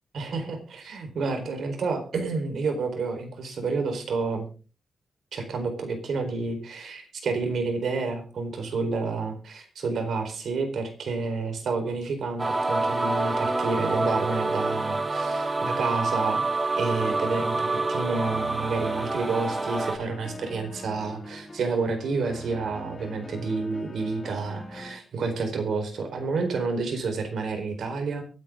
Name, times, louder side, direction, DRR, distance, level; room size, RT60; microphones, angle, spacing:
voice 1, 0.1-4.5 5.3-16.4 16.7-28.2, right 4 dB, 75° right, 5 dB, 4.3 m, -29 dB
sound 1, 12.4-20.0, right 2 dB, 25° right, 1.2 m, -27 dB
sound 2, 17.0-25.0, left 2 dB, 20° left, 2.8 m, -43 dB
23.5 x 9.0 x 3.7 m, 0.34 s
wide cardioid pair, 155°, 0 cm